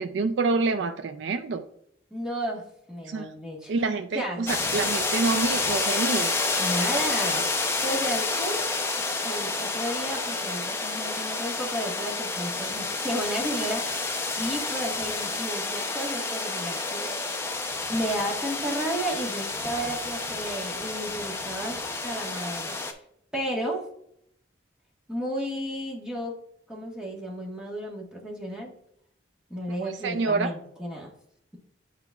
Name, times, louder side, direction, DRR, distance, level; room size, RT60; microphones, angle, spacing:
voice 1, 0.0-1.6 3.1-3.3 3.7-6.3 29.8-30.5, right 4 dB, 70° right, 8 dB, 0.4 m, -27 dB
voice 2, 2.1-2.6 2.9-3.7 4.1-4.4 6.6-8.6 9.0-17.1 17.9-22.7 23.3-23.8 25.1-26.4 26.7-28.7 29.5-31.1, equal, 5° right, -3 dB, 1.2 m, -33 dB
sound 1, 4.5-22.9, left 3 dB, 15° left, 0.5 m, -29 dB
8.8 x 4.7 x 2.3 m, 0.72 s
head